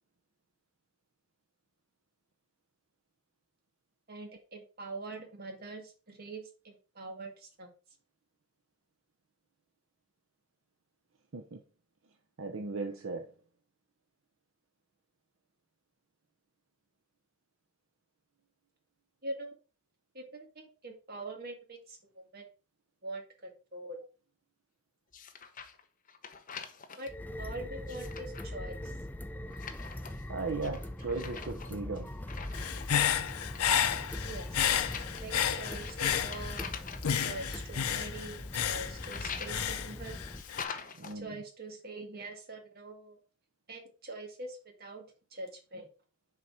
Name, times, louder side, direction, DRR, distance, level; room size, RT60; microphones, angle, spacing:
voice 1, 4.1-7.7 19.2-19.5 20.1-22.4 23.0-24.0 27.0-27.1 27.4-28.9 34.2-34.6 35.2-36.7 37.2-40.2 41.1-43.2 43.7-45.0 45.3-45.9, right 2 dB, 45° right, 1.9 m, -44 dB
voice 2, 12.4-13.3 30.3-32.1 41.0-41.4, right 3 dB, 65° right, 0.7 m, -37 dB
sound 1, 25.1-25.8 26.1-27.1 27.7-28.5 29.5-30.3 30.6-33.0 33.3-33.8 34.6-37.2 38.6-39.7 40.4-41.2, left 6 dB, 35° left, 0.8 m, -44 dB
sound 2, 27.1-40.4, left 1 dB, 10° left, 0.4 m, -42 dB
Human voice / Breathing, 32.5-36.7 37.0-40.6, left 9 dB, 90° left, 0.6 m, -31 dB
7.0 x 4.1 x 4.9 m
head